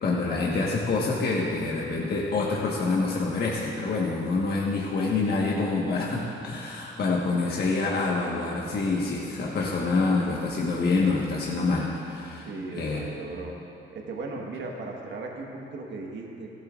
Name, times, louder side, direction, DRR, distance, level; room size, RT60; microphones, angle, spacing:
voice 1, 0.0-12.5 12.7-13.0, left 3 dB, 55° left, -4 dB, 1.4 m, -26 dB
voice 2, 12.5-13.5 13.9-16.5, right 3 dB, 65° right, 0 dB, 1.5 m, -37 dB
15.5 x 12.5 x 2.5 m, 3.0 s
cardioid pair, 90°, 20 cm